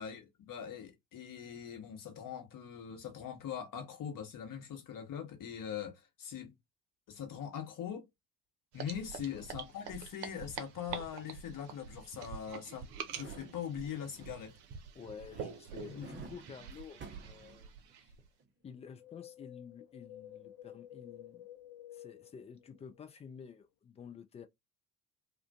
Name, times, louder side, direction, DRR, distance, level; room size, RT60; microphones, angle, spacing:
voice 1, 0.0-6.5 7.1-8.1 8.7-12.9 13.2-14.5 15.9-16.2, left 8 dB, 40° left, 1.2 m, -42 dB
sound 1, 8.7-18.3, right 7 dB, 55° right, 0.7 m, -46 dB
sound 2, 12.9-14.6 15.0-18.0 18.4-18.5, right 4 dB, 25° right, 0.7 m, -53 dB
voice 2, 14.9-18.1 18.6-21.5 21.9-24.5, left 6 dB, 15° left, 0.3 m, -51 dB
Wind, 18.8-23.1 23.4-23.5, left 12 dB, 60° left, 0.6 m, -52 dB
2.4 x 2.4 x 2.3 m
figure-of-eight pair, 60°, 48 cm